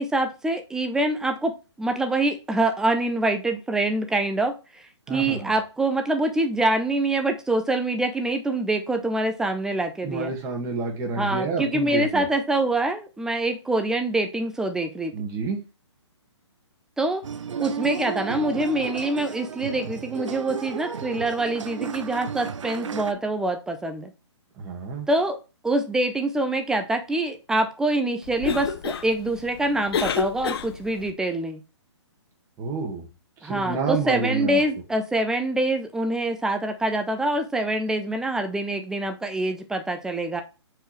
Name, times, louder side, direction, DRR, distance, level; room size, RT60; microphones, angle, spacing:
voice 1, 0.0-4.8 5.1-10.3 11.1-15.1 17.0-17.2 17.6-24.1 25.1-25.4 25.6-31.6 33.4-40.4, right 2 dB, 5° right, 6 dB, 0.4 m, -25 dB
voice 2, 5.1-5.5 10.0-12.3 15.1-15.6 24.6-25.1 32.6-33.0 33.4-34.6, right 4 dB, 20° right, 1 dB, 1.8 m, -29 dB
sound 1, 17.2-23.1, right 7 dB, 85° right, 0.6 m, -33 dB
Cough, 28.2-31.1, left 6 dB, 55° left, 0.8 m, -30 dB
6.3 x 4.7 x 3.2 m, 0.30 s
hypercardioid pair, 150°, 15 cm